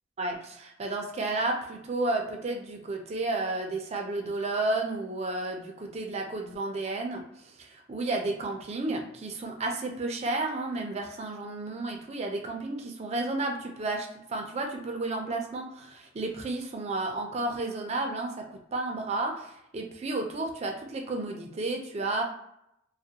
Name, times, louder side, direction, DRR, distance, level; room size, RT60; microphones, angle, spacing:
voice 1, 0.2-22.2, right 2 dB, 30° right, 2 dB, 0.4 m, -32 dB
2.3 x 2.0 x 2.8 m, 0.79 s
head